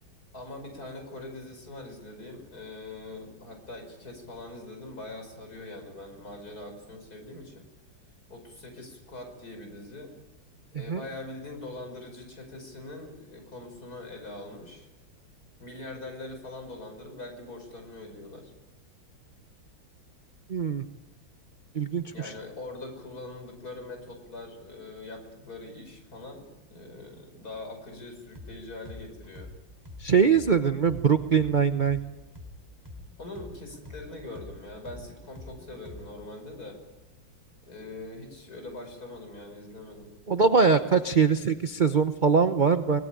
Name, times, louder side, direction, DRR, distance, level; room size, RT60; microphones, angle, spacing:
voice 1, 0.3-7.7 8.3-10.1 10.7-14.9 15.6-18.5 22.1-29.5 31.5-31.6 33.2-36.8 37.6-40.2 40.9-41.0, left 2 dB, 45° left, 5 dB, 6.0 m, -42 dB
voice 2, 20.5-20.8 21.7-22.0 30.0-32.0 40.3-43.0, right 5 dB, 50° right, 9 dB, 0.5 m, -22 dB
sound 1, 28.3-28.5 28.8-32.5 32.8-36.3, left 2 dB, 10° right, 3.5 m, -45 dB
24.5 x 19.5 x 9.1 m, 1.1 s
omnidirectional pair, 2.2 m